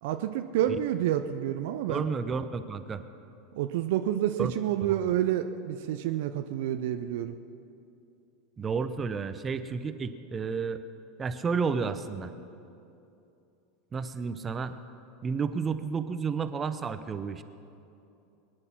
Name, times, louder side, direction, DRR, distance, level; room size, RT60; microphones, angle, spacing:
voice 1, 0.0-2.0 3.5-7.3, right 11 dB, 60° right, 9 dB, 0.6 m, -29 dB
voice 2, 1.9-3.0 4.4-4.5 4.8-5.0 8.6-10.8 11.2-12.3 13.9-14.7 15.2-17.4, right 5 dB, 25° right, 11 dB, 0.9 m, -31 dB
22.0 x 9.8 x 5.8 m, 2.7 s
figure-of-eight pair, 80°, 0 cm